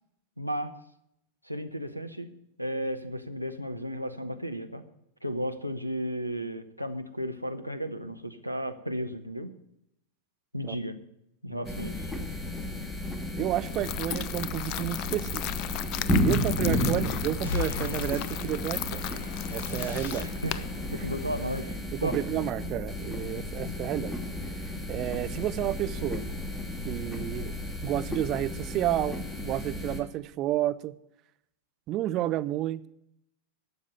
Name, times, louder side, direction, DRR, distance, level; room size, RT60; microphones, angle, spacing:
voice 1, 0.4-0.7 1.4-2.3 2.6-4.8 5.2-9.5 10.5-11.0 11.4-12.1 16.6-16.9 20.1-20.6 20.9-22.2, equal, 90° right, 8 dB, 1.0 m, -34 dB
sound 1, 11.6-30.0, left 1 dB, 10° left, 1.9 m, -33 dB
voice 2, 13.3-15.4 16.2-19.0 19.5-20.3 22.0-24.1 24.9-26.2 26.8-27.6 27.8-30.9 31.9-32.9, right 14 dB, 35° right, 14 dB, 0.6 m, -31 dB
sound 2, 13.7-21.6, left 14 dB, 40° left, 0.6 m, -37 dB
sound 3, 17.4-20.7, left 6 dB, 55° left, 4.8 m, -38 dB
12.0 x 7.4 x 9.6 m, 0.79 s
figure-of-eight pair, 90°, 0 cm